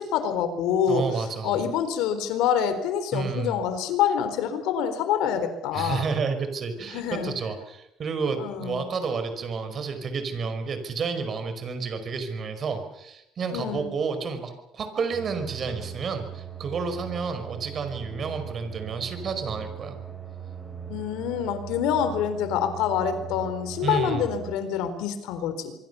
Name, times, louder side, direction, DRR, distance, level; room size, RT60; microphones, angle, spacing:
voice 1, 0.0-1.0 1.4-6.1 6.9-7.3 8.4-8.8 13.5-13.9 20.9-25.7, left 8 dB, 85° left, 10 dB, 4.1 m, -26 dB
voice 2, 0.9-1.7 3.1-3.6 5.7-20.0 23.8-24.3, right 5 dB, 40° right, 8 dB, 5.2 m, -30 dB
sound 1, 15.1-24.6, right 8 dB, 20° right, 6.6 m, -39 dB
25.0 x 24.5 x 7.0 m, 0.86 s
cardioid pair, 125°, 0 cm